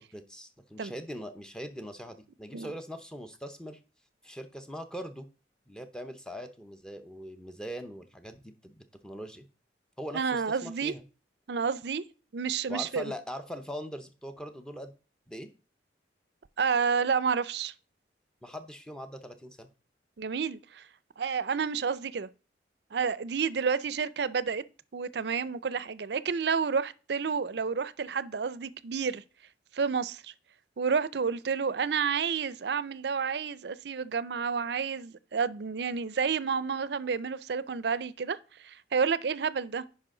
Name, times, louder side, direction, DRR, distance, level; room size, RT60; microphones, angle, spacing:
voice 1, 0.0-3.8 4.2-5.3 5.7-9.5 10.0-11.0 12.7-14.9 15.3-15.5 18.4-19.7, equal, 5° left, 0.8 m, -41 dB
voice 2, 10.1-10.9 11.5-12.0 12.3-13.1 16.6-17.7 20.2-20.8 21.2-22.3 22.9-24.6 24.9-29.2 29.7-30.3 30.8-39.8, right 6 dB, 65° right, 0.5 m, -30 dB
9.6 x 5.4 x 3.8 m
head